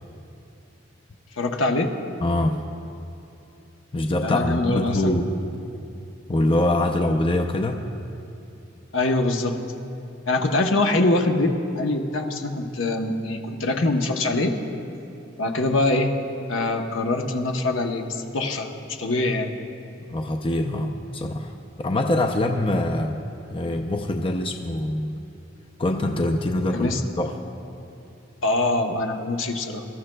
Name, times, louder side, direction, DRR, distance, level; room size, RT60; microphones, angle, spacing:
voice 1, 1.4-1.9 4.2-5.2 8.9-9.6 10.3-14.6 15.4-16.1 16.5-19.6 26.7-27.0 28.4-29.9, left 2 dB, 70° left, 4 dB, 0.9 m, -24 dB
voice 2, 2.2-2.6 3.9-5.4 6.3-7.8 20.1-23.2 23.5-25.2 25.8-27.3, left 1 dB, 25° left, 3 dB, 0.5 m, -24 dB
24.5 x 13.5 x 2.3 m, 2.7 s
head